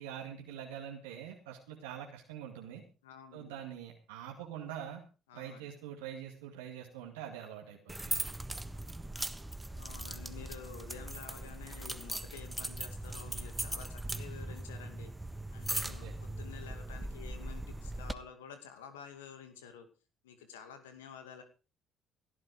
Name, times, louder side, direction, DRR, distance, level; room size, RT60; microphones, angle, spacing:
voice 1, 0.0-2.8 3.3-5.0 5.3-8.0 15.8-16.1, right 9 dB, 85° right, 0 dB, 2.3 m, -44 dB
voice 2, 3.0-3.6 5.3-5.7 9.7-15.1 15.5-19.9 20.2-21.4, left 7 dB, 90° left, 8 dB, 2.3 m, -50 dB
sound 1, 7.9-18.1, right 1 dB, 15° right, 1.4 m, -39 dB
17.5 x 11.0 x 5.1 m, 0.34 s
hypercardioid pair, 55°, 0 cm